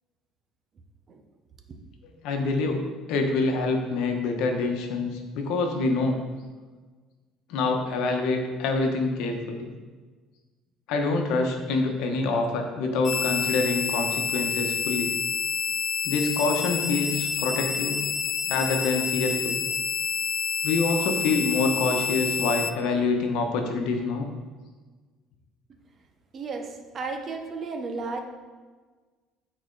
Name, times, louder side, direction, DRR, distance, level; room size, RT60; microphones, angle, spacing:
voice 1, 2.2-2.8 3.1-6.2 7.5-9.7 10.9-15.1 16.0-18.0 18.4-19.6 20.6-24.3, left 3 dB, 70° left, 3 dB, 1.0 m, -26 dB
sound 1, 13.0-22.7, left 7 dB, 35° left, 0.4 m, -28 dB
voice 2, 26.3-28.2, right 4 dB, 30° right, 4 dB, 0.7 m, -33 dB
8.7 x 4.3 x 3.9 m, 1.4 s
cardioid pair, 155°, 0 cm